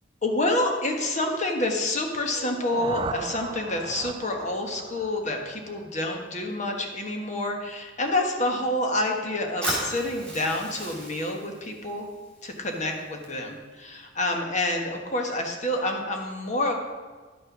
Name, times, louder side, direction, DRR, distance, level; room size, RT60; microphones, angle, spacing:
voice 1, 0.2-12.1 12.4-16.7, left 1 dB, 40° left, 2 dB, 1.4 m, -28 dB
sound 1, 2.3-6.2, right 4 dB, 25° right, 0.3 m, -38 dB
Fire, 9.6-13.6, right 1 dB, 5° left, 3.0 m, -36 dB
10.5 x 6.5 x 6.0 m, 1.4 s
head